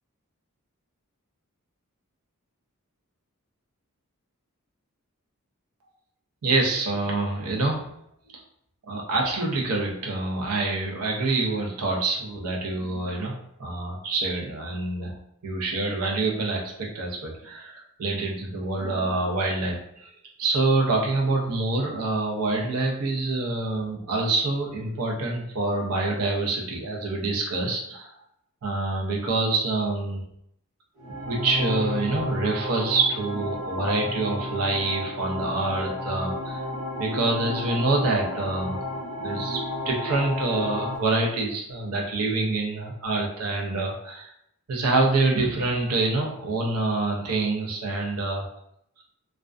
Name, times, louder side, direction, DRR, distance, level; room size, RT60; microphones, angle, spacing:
voice 1, 6.4-7.8 8.9-15.2 15.4-19.8 20.4-28.1 28.6-30.2 31.2-36.6 37.0-38.8 39.2-39.6 39.8-44.3 44.7-48.5, right 3 dB, 85° right, -1 dB, 0.6 m, -26 dB
sound 1, 31.0-41.0, left 1 dB, 20° right, 1.1 m, -32 dB
2.4 x 2.1 x 2.4 m, 0.74 s
head